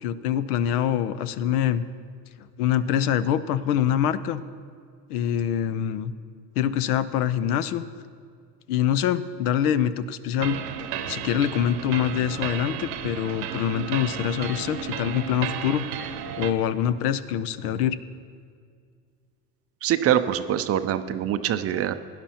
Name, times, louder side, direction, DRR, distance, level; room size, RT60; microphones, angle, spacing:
voice 1, 0.0-1.8 2.4-4.4 5.1-6.1 6.6-7.8 8.7-10.6 11.1-15.9 16.4-18.0, left 10 dB, 75° left, 14 dB, 0.7 m, -25 dB
sound 1, 10.4-16.5, right 8 dB, 70° right, 0.9 m, -33 dB
voice 2, 19.8-21.9, right 10 dB, 35° right, 10 dB, 0.4 m, -24 dB
16.5 x 10.5 x 2.9 m, 2.1 s
hypercardioid pair, 90°, 46 cm